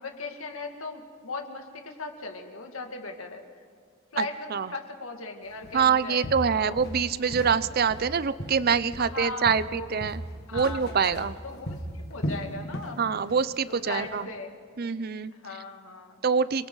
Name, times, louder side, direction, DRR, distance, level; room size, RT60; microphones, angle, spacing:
voice 1, 0.0-3.4 4.1-6.8 9.0-10.2 10.5-13.0 13.7-14.6 15.3-16.2, left 3 dB, 75° left, 3 dB, 2.2 m, -38 dB
Walk footsteps, 5.6-5.9 6.2-7.6 7.9-9.2 9.5-13.0 13.3-13.5 14.0-14.1, equal, 50° left, 1.8 m, -36 dB
voice 2, 5.7-10.2 10.5-11.3 13.0-14.3 14.8-15.3 16.2-16.7, right 6 dB, 45° right, 15 dB, 0.5 m, -25 dB
29.5 x 22.0 x 4.0 m, 2.1 s
head